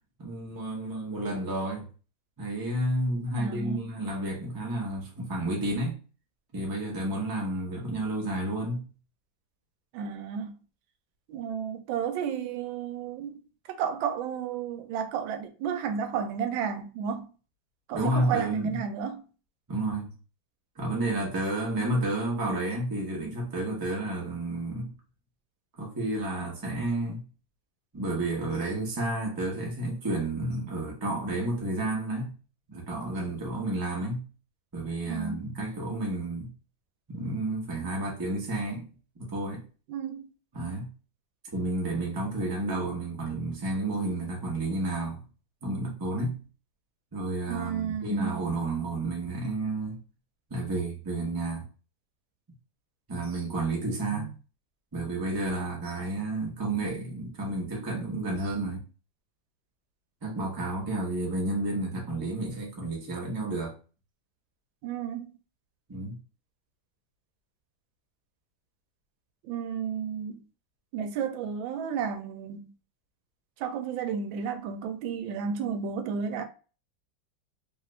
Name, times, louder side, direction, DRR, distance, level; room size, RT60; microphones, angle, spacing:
voice 1, 0.2-1.9 2.4-6.0 6.5-8.9 17.9-18.8 19.7-20.1 20.8-24.9 25.8-27.2 27.9-32.3 32.7-34.3 34.7-36.5 37.1-38.9 39.2-39.6 40.5-40.9 41.5-45.2 45.6-46.4 47.1-50.0 50.5-51.6 53.1-54.3 54.9-58.8 60.2-63.7 65.9-66.2, right 2 dB, 20° right, 0.6 m, -31 dB
voice 2, 3.3-3.9 9.9-10.6 11.3-13.4 13.7-17.3 17.9-19.2 35.1-35.5 39.9-40.3 47.5-48.4 54.2-54.3 64.8-65.3 69.4-70.4 70.9-72.7 73.6-76.4, right 7 dB, 85° right, 1.3 m, -32 dB
3.2 x 2.4 x 3.2 m
omnidirectional pair, 2.1 m